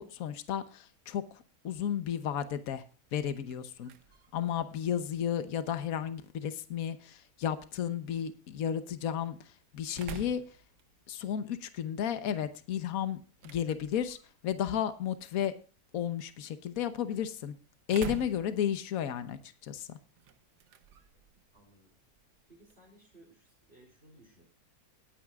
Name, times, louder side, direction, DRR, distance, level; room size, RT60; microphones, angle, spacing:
voice 1, 0.0-2.8 3.1-3.9 4.3-10.4 11.1-14.2 14.4-15.5 15.9-17.6 17.9-20.0, left 9 dB, 60° left, 10 dB, 1.3 m, -33 dB
sound 1, 3.1-22.9, right 7 dB, 90° right, 1.5 m, -51 dB
voice 2, 21.5-21.9 22.5-24.4, right 1 dB, 35° right, -2 dB, 3.9 m, -59 dB
19.5 x 9.2 x 2.4 m, 0.37 s
omnidirectional pair, 1.7 m